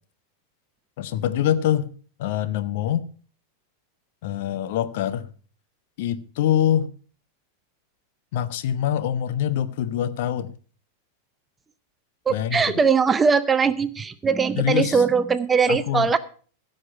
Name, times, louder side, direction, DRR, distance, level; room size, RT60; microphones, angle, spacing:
voice 1, 1.0-1.9 2.2-3.1 4.2-5.3 6.0-6.9 8.3-10.5 12.3-12.8 14.6-15.0 15.7-16.1, left 10 dB, 50° left, 0.8 m, -24 dB
voice 2, 12.3-16.2, right 5 dB, 15° right, 0.7 m, -20 dB
15.5 x 6.6 x 5.5 m
figure-of-eight pair, 90°, 0 cm